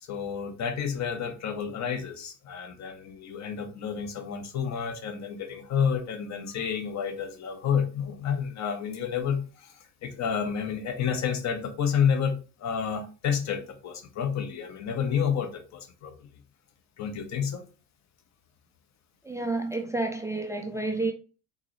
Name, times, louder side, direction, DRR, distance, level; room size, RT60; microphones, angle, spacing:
voice 1, 0.0-16.3 17.0-17.7, left 7 dB, 35° left, 0.8 m, -30 dB
voice 2, 19.2-21.1, right 2 dB, 10° right, 0.3 m, -30 dB
3.7 x 2.7 x 3.1 m
hypercardioid pair, 85°, 46 cm